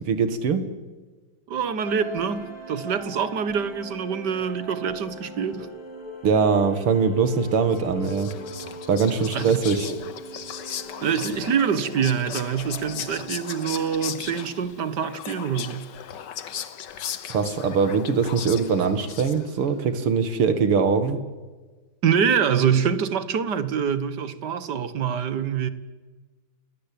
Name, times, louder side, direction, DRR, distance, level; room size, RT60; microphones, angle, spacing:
voice 1, 0.1-0.6 6.2-8.3 8.9-9.9 17.3-21.2, right 5 dB, 90° right, 2.8 m, -22 dB
voice 2, 1.5-5.7 9.3-9.6 9.9-10.0 11.0-15.9 22.0-25.7, right 7 dB, 55° right, 1.8 m, -25 dB
sound 1, 1.8-15.9, right 2 dB, 10° right, 7.6 m, -41 dB
Whispering, 7.7-19.7, left 9 dB, 60° left, 1.7 m, -37 dB
28.5 x 20.0 x 8.6 m
omnidirectional pair, 2.3 m